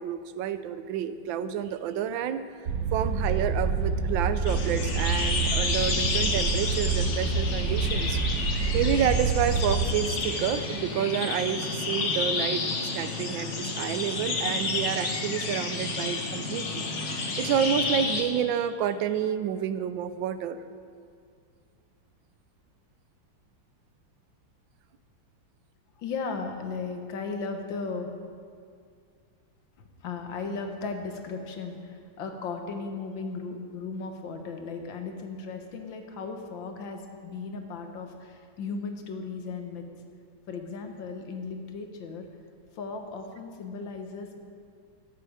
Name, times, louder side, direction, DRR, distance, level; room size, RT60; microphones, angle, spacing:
voice 1, 0.0-2.4 2.9-8.2 8.7-12.7 12.9-16.8 17.2-20.6, right 9 dB, 90° right, 12 dB, 1.4 m, -29 dB
sound 1, 2.7-9.9, right 4 dB, 55° right, 1.2 m, -27 dB
sound 2, 4.5-18.2, left 3 dB, 45° left, 1.3 m, -30 dB
voice 2, 26.0-28.1 29.8-39.8 40.5-42.3 42.7-44.4, left 4 dB, 85° left, 4 dB, 1.9 m, -36 dB
13.5 x 10.0 x 4.9 m, 2.2 s
omnidirectional pair, 2.0 m